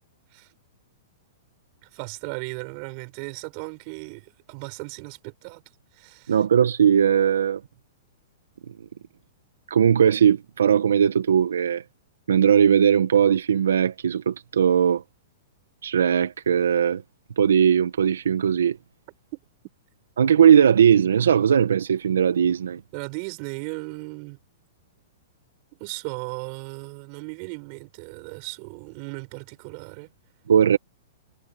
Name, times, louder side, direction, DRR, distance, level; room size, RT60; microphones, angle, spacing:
voice 1, 1.8-5.6 5.9-6.4 22.9-24.4 25.8-30.1, right 34 dB, 45° right, 7.0 m, -36 dB
voice 2, 6.3-7.6 9.7-11.8 12.3-15.0 15.8-17.0 17.4-18.8 20.2-22.8 30.5-30.8, right 8 dB, 90° right, 1.4 m, -19 dB
hypercardioid pair, 140°, 0 cm